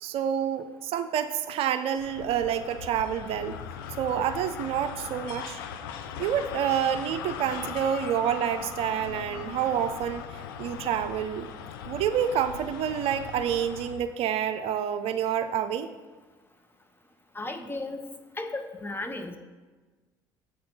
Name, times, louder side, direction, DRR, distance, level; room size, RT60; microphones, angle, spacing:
voice 1, 0.0-3.6 4.0-5.6 6.2-10.2 10.6-11.5 11.9-15.9, right 9 dB, 60° right, 10 dB, 0.5 m, -28 dB
sound 1, 2.0-14.1, left 7 dB, 80° left, 0.5 m, -39 dB
voice 2, 17.3-18.0 18.4-19.4, left 2 dB, 20° left, 6 dB, 1.0 m, -34 dB
7.8 x 4.3 x 5.4 m, 1.3 s
hypercardioid pair, 55°, 11 cm